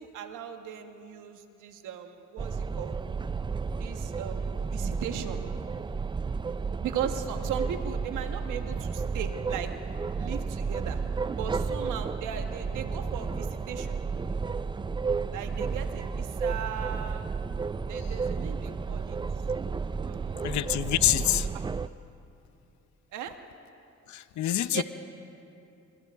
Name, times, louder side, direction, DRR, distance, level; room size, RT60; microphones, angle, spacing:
voice 1, 0.0-3.0 3.8-5.4 6.8-9.7 10.2-11.0 11.4-14.0 15.3-17.3 17.9-19.2 20.0-20.6 21.5-21.7 23.1-23.4 24.7-24.8, right 9 dB, 85° right, 6 dB, 1.3 m, -38 dB
sound 1, 2.4-21.9, right 5 dB, 15° right, 0.4 m, -32 dB
voice 2, 20.4-21.5 24.1-24.8, left 12 dB, 70° left, 14 dB, 0.8 m, -26 dB
28.5 x 26.0 x 3.6 m, 2.8 s
cardioid pair, 90°, 30 cm